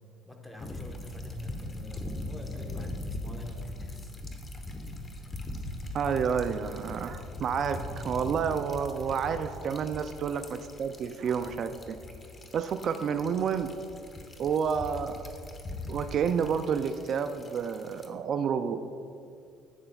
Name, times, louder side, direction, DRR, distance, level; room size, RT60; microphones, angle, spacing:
voice 1, 0.2-4.2, left 1 dB, 5° left, 2 dB, 1.2 m, -45 dB
sound 1, 0.6-18.1, left 1 dB, 25° left, 1.1 m, -41 dB
voice 2, 5.9-12.0 12.5-13.7 14.4-15.3 15.9-18.8, right 7 dB, 55° right, 9 dB, 0.3 m, -30 dB
11.0 x 8.7 x 2.3 m, 2.4 s
supercardioid pair, 85°, 0 cm